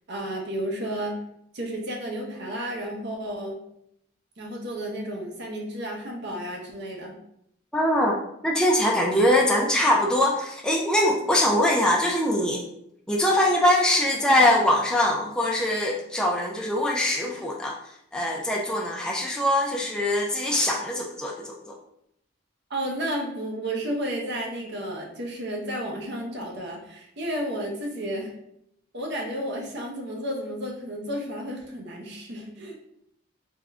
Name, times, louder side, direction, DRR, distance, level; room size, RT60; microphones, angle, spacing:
voice 1, 0.1-1.2 1.5-3.6 4.4-7.2 22.7-28.3 28.9-32.7, right 1 dB, 55° right, 0 dB, 0.8 m, -32 dB
voice 2, 7.7-8.2 8.4-12.6 13.1-17.8 18.1-21.7, left 1 dB, 5° left, -2 dB, 0.3 m, -22 dB
3.6 x 2.2 x 3.5 m, 0.75 s
head